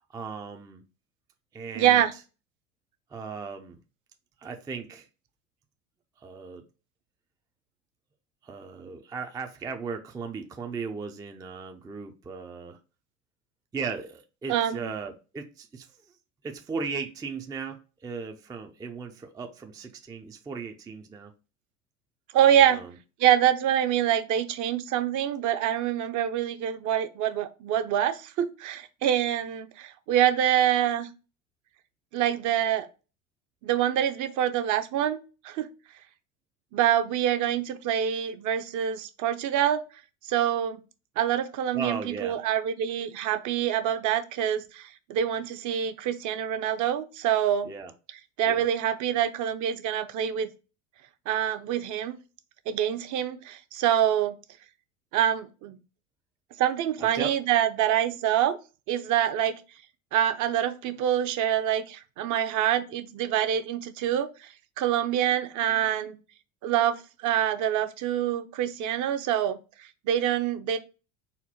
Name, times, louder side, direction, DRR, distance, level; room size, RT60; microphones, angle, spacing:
voice 1, 0.1-0.8 1.5-2.1 3.1-3.8 4.4-5.1 6.2-6.6 8.4-12.8 13.7-15.9 16.4-21.3 22.6-22.9 41.7-42.4 47.6-47.9 48.5-48.7 57.0-57.4, right 5 dB, 10° right, 0.3 m, -37 dB
voice 2, 1.8-2.1 14.5-14.9 22.3-22.8 23.2-31.1 32.1-32.9 33.6-35.2 35.4-35.7 36.7-39.8 40.2-40.8 41.2-47.7 48.4-50.5 51.3-52.2 52.7-54.4 55.1-55.8 56.6-58.6 58.9-59.5 60.1-64.5 64.8-66.2 66.6-70.8, right 10 dB, 50° right, 0.6 m, -25 dB
4.2 x 2.1 x 4.2 m
hypercardioid pair, 90°, 40 cm